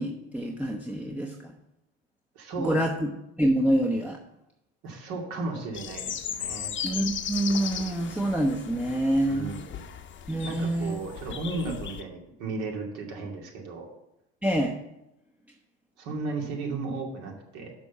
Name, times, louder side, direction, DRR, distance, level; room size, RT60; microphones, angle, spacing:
voice 1, 0.0-1.5 2.6-3.1 3.4-4.2 6.8-9.5 10.3-11.0 14.4-14.8, right 1 dB, 5° right, 0 dB, 0.9 m, -26 dB
voice 2, 2.3-2.8 4.8-6.7 9.3-9.8 10.4-13.9 16.0-17.7, right 3 dB, 65° right, 1 dB, 2.4 m, -34 dB
sound 1, 5.7-12.0, left 8 dB, 40° left, 1.0 m, -37 dB
6.2 x 6.1 x 7.0 m, 0.87 s
hypercardioid pair, 75°, 31 cm